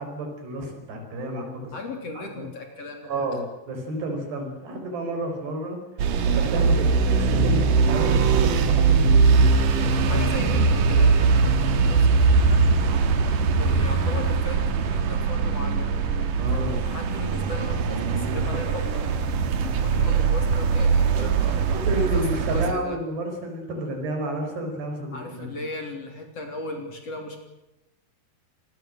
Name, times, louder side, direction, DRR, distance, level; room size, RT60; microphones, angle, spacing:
voice 1, 0.0-1.7 2.2-2.5 3.0-5.8 6.3-9.5 16.4-16.8 21.4-25.6, right 1 dB, 75° right, 4 dB, 7.0 m, -31 dB
voice 2, 1.7-3.3 10.1-12.7 13.4-19.0 19.6-21.7 22.0-23.0 25.1-27.4, left 2 dB, 40° left, 4 dB, 4.0 m, -37 dB
sound 1, 6.0-22.7, right 4 dB, 60° right, 3.0 m, -21 dB
26.0 x 20.5 x 7.8 m, 0.94 s
omnidirectional pair, 4.8 m